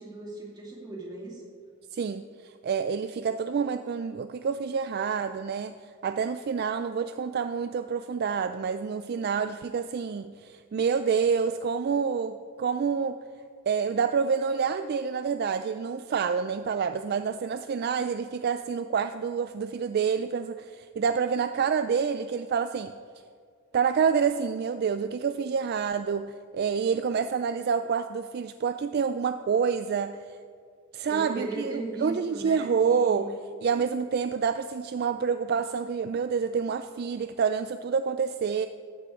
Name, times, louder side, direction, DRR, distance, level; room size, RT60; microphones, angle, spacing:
voice 1, 0.0-1.4 31.1-33.3, right 2 dB, 20° right, -2 dB, 2.5 m, -37 dB
voice 2, 1.9-5.7 6.0-13.2 13.7-22.9 23.7-30.4 30.9-33.3 33.6-38.7, right 6 dB, 50° right, 10 dB, 0.3 m, -28 dB
14.0 x 12.0 x 3.7 m, 2.1 s
head